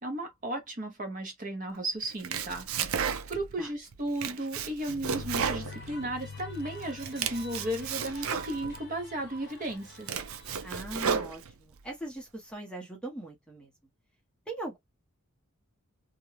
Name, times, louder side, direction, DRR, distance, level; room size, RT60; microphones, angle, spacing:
voice 1, 0.0-10.2, right 1 dB, 35° right, 0.8 m, -35 dB
Domestic sounds home sounds, 2.0-3.6 3.9-6.4 6.8-8.8 9.4-9.5 9.9-11.8, right 7 dB, 70° right, 0.4 m, -33 dB
sound 1, 4.9-10.4, left 5 dB, 85° left, 0.4 m, -46 dB
sound 2, 5.2-10.8, equal, 50° left, 0.8 m, -50 dB
voice 2, 10.6-13.7 14.5-14.8, right 1 dB, 5° left, 0.8 m, -40 dB
2.4 x 2.2 x 3.2 m
head